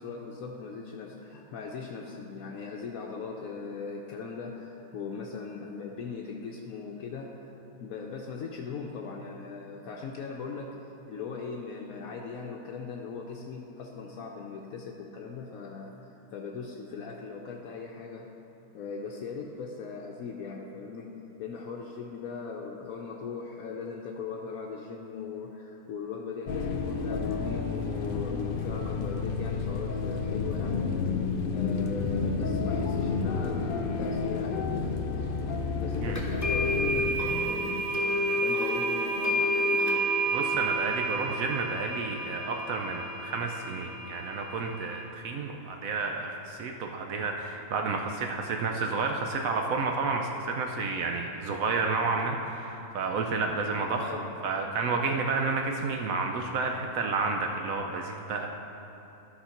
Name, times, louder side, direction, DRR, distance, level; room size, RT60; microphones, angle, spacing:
voice 1, 0.0-7.5 7.8-10.7 11.1-15.9 16.3-18.3 18.7-21.1 21.4-30.9 31.5-35.3 35.8-40.0 54.0-54.3, left 5 dB, 70° left, 0 dB, 1.0 m, -39 dB
sound 1, 26.5-37.1, left 4 dB, 90° left, 0.4 m, -30 dB
sound 2, 36.2-45.0, right 1 dB, 15° left, 0.9 m, -30 dB
voice 2, 40.3-58.5, right 4 dB, 70° right, 2 dB, 1.0 m, -31 dB
11.5 x 4.3 x 5.7 m, 2.9 s
omnidirectional pair, 1.6 m